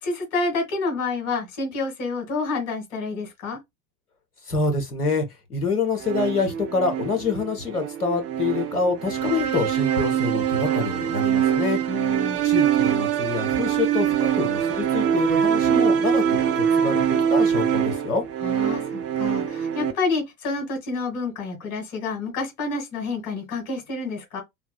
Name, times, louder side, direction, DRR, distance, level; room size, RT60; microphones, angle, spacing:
voice 1, 0.0-3.6 11.9-12.4 18.4-24.4, left 3 dB, 55° left, 2.0 m, -29 dB
voice 2, 4.5-11.8 12.4-18.2, left 4 dB, 85° left, 1.0 m, -26 dB
sound 1, 6.0-19.9, right 9 dB, 35° right, 0.7 m, -23 dB
3.5 x 3.1 x 2.2 m
figure-of-eight pair, 75°, 45 cm